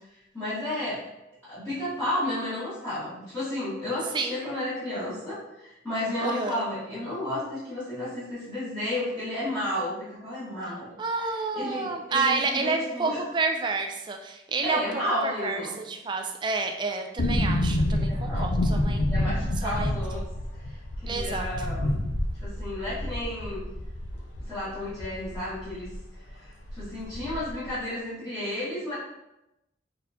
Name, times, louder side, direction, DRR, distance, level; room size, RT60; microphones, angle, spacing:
voice 1, 0.3-1.0 1.5-10.9 11.5-13.2 14.6-15.7 17.9-18.5 18.8-20.2 21.0-21.9 22.4-23.6 24.4-25.9 26.3-28.9, left 1 dB, 10° left, -16 dB, 1.5 m, -32 dB
voice 2, 4.1-4.4 6.2-6.6 11.0-19.0 19.6-19.9 21.1-21.7, right 3 dB, 25° right, 4 dB, 0.3 m, -29 dB
sound 1, 17.2-26.0 26.3-26.4 26.6-27.7 27.9-28.0, left 1 dB, 80° left, 0.6 m, -28 dB
4.1 x 3.8 x 2.7 m, 0.92 s
head